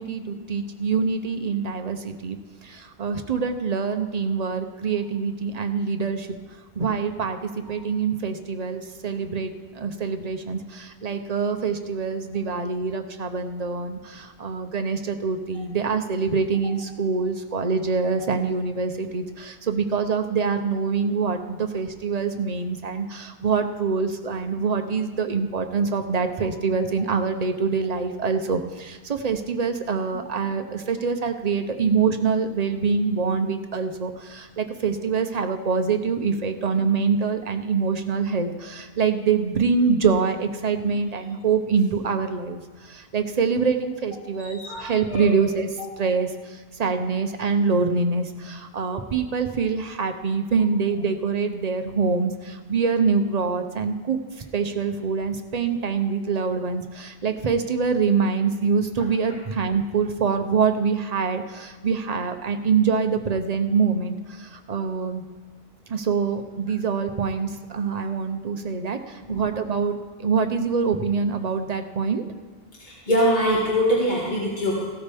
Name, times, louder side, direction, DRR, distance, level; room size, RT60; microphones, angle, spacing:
voice 1, 0.0-6.4 6.8-42.6 42.9-45.7 46.0-46.3 46.8-54.2 54.5-65.2 65.9-72.2, right 5 dB, 45° right, 7 dB, 0.8 m, -25 dB
voice 2, 44.4-45.3 69.3-69.4 73.1-74.9, equal, 50° left, -5 dB, 2.2 m, -23 dB
16.0 x 12.5 x 3.5 m, 1.3 s
omnidirectional pair, 1.0 m